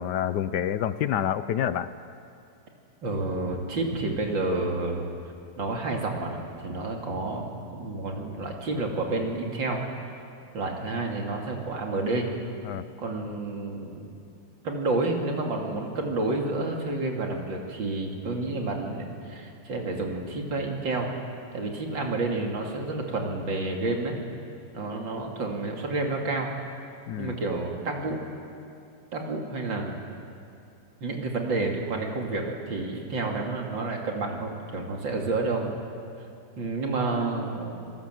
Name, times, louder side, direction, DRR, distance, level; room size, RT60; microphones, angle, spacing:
voice 1, 0.0-1.9 12.6-12.8 27.1-27.4, left 10 dB, 70° left, 14 dB, 1.2 m, -28 dB
voice 2, 3.0-5.1 5.6-7.5 7.7-9.8 10.5-12.3 13.0-14.1 14.6-21.1 21.5-24.2 24.7-26.5 27.2-28.2 29.1-29.9 31.0-35.7 36.6-37.8, right 2 dB, 85° right, 1 dB, 3.3 m, -29 dB
27.5 x 18.0 x 7.7 m, 2.5 s
omnidirectional pair, 2.0 m